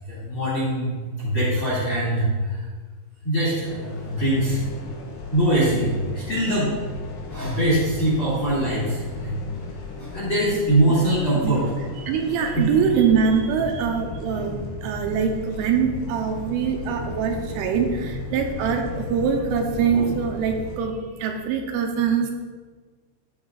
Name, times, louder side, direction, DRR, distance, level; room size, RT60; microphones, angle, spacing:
voice 1, 0.1-2.6 3.2-4.6 5.3-6.7 7.3-9.3 10.0-11.7 12.5-12.6, right 1 dB, 35° left, -7 dB, 2.1 m, -22 dB
sound 1, 3.6-20.8, left 3 dB, 90° left, 1.8 m, -36 dB
voice 2, 12.0-22.3, right 6 dB, 85° right, 3 dB, 3.2 m, -23 dB
13.5 x 4.9 x 3.9 m, 1.4 s
omnidirectional pair, 5.8 m